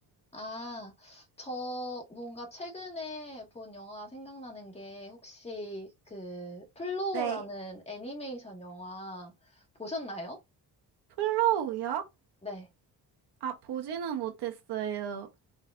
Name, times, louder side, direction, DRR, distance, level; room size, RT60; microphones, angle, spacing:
voice 1, 0.3-10.4 12.4-12.7, left 1 dB, 15° left, 1.8 m, -39 dB
voice 2, 11.2-12.0 13.4-15.3, right 11 dB, 90° right, 1.1 m, -31 dB
4.0 x 3.9 x 2.5 m
cardioid pair, 125°, 39 cm